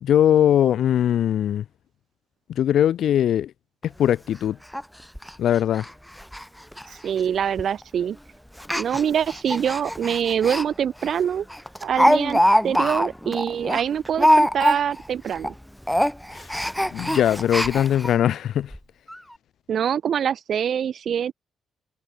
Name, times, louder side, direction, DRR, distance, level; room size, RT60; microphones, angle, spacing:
voice 1, 0.0-1.6 2.5-3.5 3.8-4.6 5.4-5.9 16.9-18.7, left 10 dB, 70° left, 0.6 m, -20 dB
Speech, 3.8-3.9 4.3-4.4 4.7-4.8 5.2-5.3 5.8-5.9 6.2-6.4 6.7-6.8 7.6-7.8 8.6-10.7 11.0-11.1 11.5-15.1 15.3-15.5 15.8-18.1 18.7-18.8 19.1-19.2, equal, ahead, 1.1 m, -23 dB
voice 2, 7.0-8.2 8.7-11.5 11.8-15.5 19.7-21.3, right 8 dB, 60° right, 1.5 m, -24 dB
cardioid pair, 90°, 0 cm